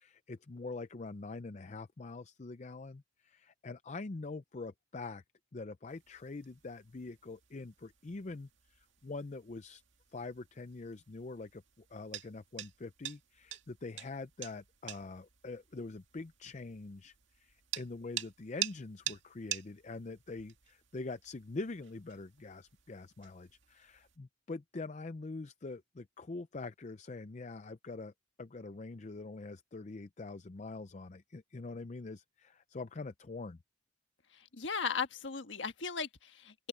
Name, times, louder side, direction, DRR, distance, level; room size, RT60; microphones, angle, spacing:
voice 1, 0.0-5.2 5.5-9.8 10.1-28.1 28.4-33.6, left 3 dB, 35° left, 0.5 m, -44 dB
sound 1, 5.9-24.2, right 11 dB, 70° right, 2.1 m, -47 dB
voice 2, 34.5-36.5, left 5 dB, 70° left, 1.5 m, -36 dB
open air
head